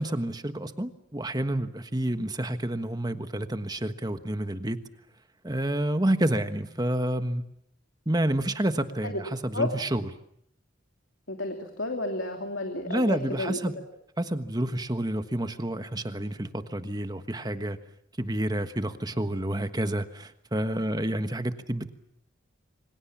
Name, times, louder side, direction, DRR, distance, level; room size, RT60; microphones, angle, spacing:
voice 1, 0.0-4.8 5.4-7.4 8.1-10.0 12.9-13.8 14.2-17.8 18.2-21.9, right 1 dB, 20° right, 9 dB, 1.4 m, -29 dB
voice 2, 11.3-13.8, left 2 dB, 75° left, 4 dB, 2.9 m, -31 dB
27.5 x 25.0 x 7.3 m, 0.73 s
head